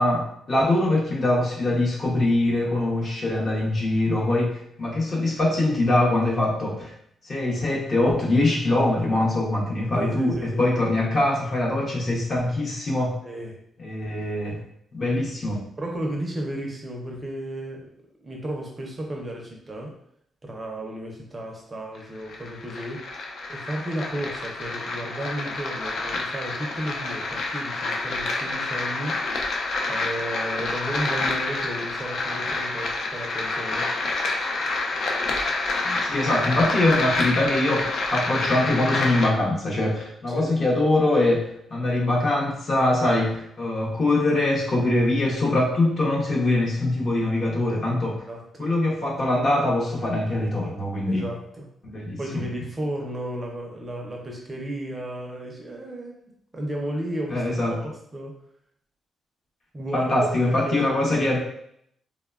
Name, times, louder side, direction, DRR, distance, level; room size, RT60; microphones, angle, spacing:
voice 1, 0.0-6.9 7.2-13.2 13.8-14.6 14.9-15.6 36.0-48.2 48.6-51.2 51.8-52.4 57.3-57.8 59.9-61.4, left 2 dB, 40° left, -2 dB, 0.7 m, -23 dB
voice 2, 9.9-11.1 13.2-13.6 15.8-17.9 18.2-20.0 20.4-23.1 23.5-29.2 29.9-33.9 35.8-36.0 40.3-40.5 48.3-48.7 51.1-51.7 52.2-56.2 56.5-57.4 57.7-58.4 59.7-61.0, right 1 dB, 25° right, 0 dB, 0.5 m, -33 dB
sound 1, 21.9-39.3, left 3 dB, 65° left, 0.4 m, -28 dB
2.9 x 2.1 x 2.3 m, 0.70 s
cardioid pair, 130°, 0 cm